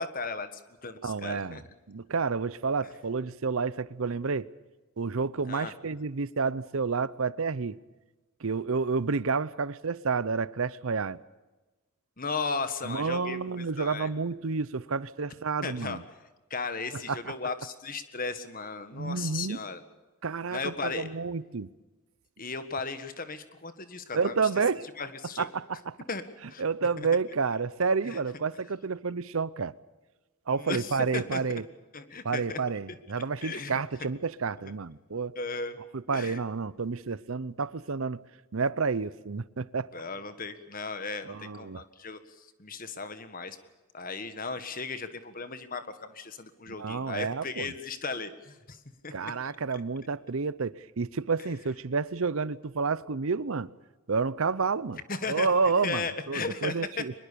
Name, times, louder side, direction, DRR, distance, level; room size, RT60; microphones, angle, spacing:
voice 1, 0.0-1.6 5.5-5.7 12.2-14.1 15.6-16.0 16.5-19.8 20.5-21.1 22.4-24.4 25.0-25.5 26.1-26.2 26.5-26.6 28.1-28.2 30.6-31.4 31.9-32.6 33.4-33.7 35.3-35.8 36.1-36.4 39.9-43.6 43.9-49.3 55.1-55.5 55.8-56.8, left 4 dB, 40° left, 1.7 m, -36 dB
voice 2, 1.0-1.6 1.9-4.5 5.0-7.8 8.4-11.2 12.8-16.0 17.1-17.3 18.9-19.6 20.2-21.7 24.1-24.8 25.4-26.0 26.6-29.7 30.5-31.6 32.2-35.3 35.9-38.2 38.5-39.9 41.2-41.8 46.7-47.7 49.1-53.7 54.1-55.0 55.3-57.1, right 4 dB, 65° right, 0.7 m, -30 dB
23.5 x 21.0 x 6.9 m
head